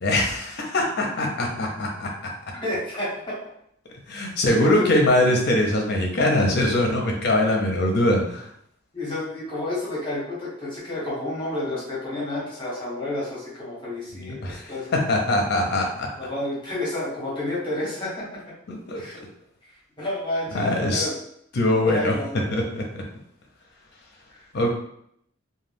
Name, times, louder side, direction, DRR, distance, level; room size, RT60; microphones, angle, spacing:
voice 1, 0.0-2.1 4.1-8.5 14.1-16.1 18.7-19.3 20.5-21.1 21.5-22.1 22.5-23.0 24.5-24.7, left 1 dB, 55° left, 1 dB, 0.6 m, -22 dB
voice 2, 2.5-3.4 4.1-4.8 8.9-14.9 16.2-18.4 19.0-19.2 20.0-21.2 21.9-22.4 24.3-24.4, left 1 dB, 25° left, -6 dB, 1.1 m, -30 dB
2.3 x 2.2 x 3.3 m, 0.72 s
head